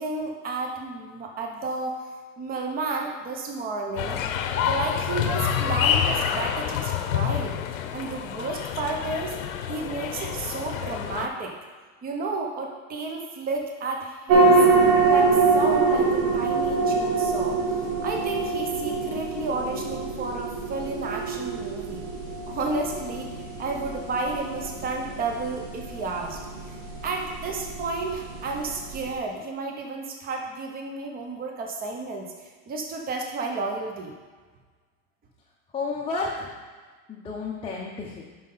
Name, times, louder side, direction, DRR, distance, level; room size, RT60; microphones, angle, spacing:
voice 1, 0.0-2.0 2.4-4.2 4.6-7.5 7.9-9.4 9.7-11.5 12.0-14.7 15.1-17.6 18.0-22.0 22.5-23.3 23.6-26.4 26.7-26.8 27.0-34.1, right 3 dB, 20° right, 2 dB, 0.9 m, -32 dB
sound 1, 4.0-11.3, left 9 dB, 80° left, 0.8 m, -27 dB
sound 2, 14.3-29.1, right 3 dB, 90° right, 2.1 m, -24 dB
voice 2, 35.7-36.5 37.1-38.2, left 3 dB, 15° left, -4 dB, 0.7 m, -31 dB
5.9 x 5.6 x 5.6 m, 1.4 s
supercardioid pair, 140°, 40 cm